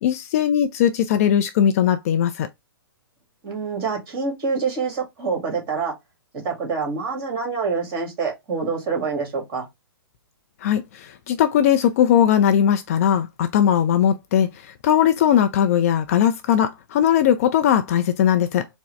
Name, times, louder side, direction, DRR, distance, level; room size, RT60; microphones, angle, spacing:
voice 1, 0.0-2.5 10.6-18.7, left 9 dB, 40° left, 0.4 m, -19 dB
voice 2, 3.4-5.9 6.3-9.7, right 5 dB, 30° right, 1.9 m, -26 dB
4.5 x 2.0 x 3.1 m
figure-of-eight pair, 120°, 13 cm